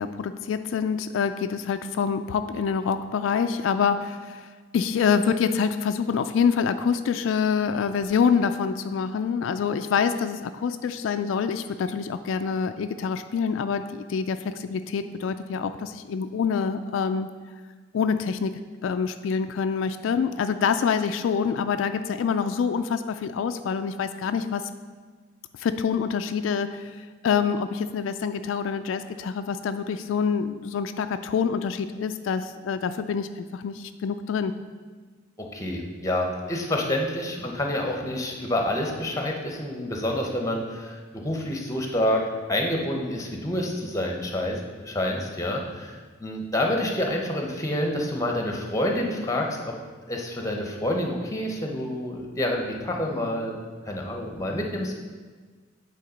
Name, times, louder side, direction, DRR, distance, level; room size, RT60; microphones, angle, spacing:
voice 1, 0.0-4.5 4.7-17.3 17.9-18.5 18.8-24.7 25.6-27.0 27.2-34.5, left 6 dB, 85° left, 9 dB, 0.3 m, -26 dB
voice 2, 35.4-49.7 50.1-53.6 53.9-54.9, left 1 dB, 15° left, 1 dB, 0.9 m, -28 dB
8.4 x 3.6 x 5.1 m, 1.5 s
head